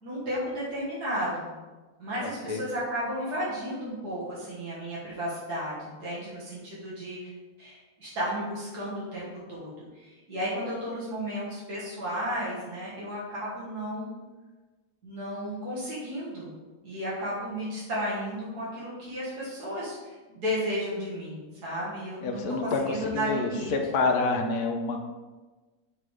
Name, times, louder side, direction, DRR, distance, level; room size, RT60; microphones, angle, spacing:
voice 1, 0.0-1.5 2.0-7.3 7.6-14.1 15.0-16.5 16.8-23.7, equal, 85° right, -7 dB, 2.1 m, -33 dB
voice 2, 2.2-2.6 22.2-25.0, left 3 dB, 75° left, 3 dB, 1.3 m, -28 dB
5.9 x 3.2 x 4.9 m, 1.2 s
omnidirectional pair, 1.7 m